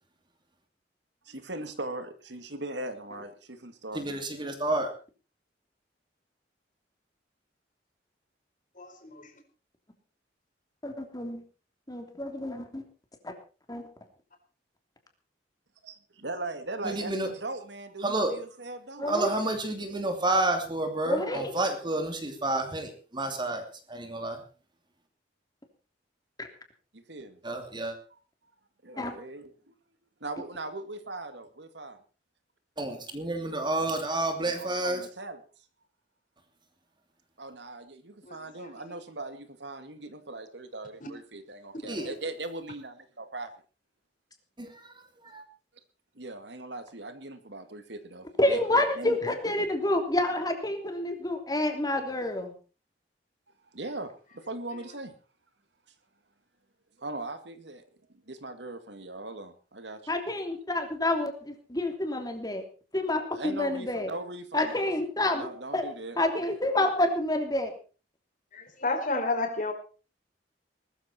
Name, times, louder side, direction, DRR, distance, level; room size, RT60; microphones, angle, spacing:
voice 1, 1.3-4.2 15.8-19.1 26.9-27.4 28.8-29.7 30.2-32.0 34.4-35.4 37.4-43.5 46.2-48.6 49.0-49.2 53.7-55.1 57.0-57.8 58.3-60.0 63.3-64.9 65.3-66.2, right 2 dB, 70° right, 9 dB, 2.2 m, -39 dB
voice 2, 3.9-4.9 16.8-17.3 18.0-18.4 19.1-24.4 27.4-28.0 32.8-35.0 41.9-42.1 44.6-44.9 45.2-45.4, right 2 dB, 25° right, 6 dB, 2.8 m, -30 dB
voice 3, 8.8-9.3 38.3-38.7 41.0-41.1 42.0-42.1 68.5-69.7, left 3 dB, 45° left, 6 dB, 4.4 m, -32 dB
voice 4, 10.8-11.4 11.9-12.8 13.2-13.3 13.7-13.8 19.0-19.4 21.1-21.5 26.4-26.5 29.0-29.1 48.4-52.5 60.1-62.6 62.9-64.1 64.5-65.5 65.7-65.9 66.2-67.7, left 1 dB, 20° left, 5 dB, 3.2 m, -28 dB
20.0 x 13.5 x 4.4 m, 0.37 s
head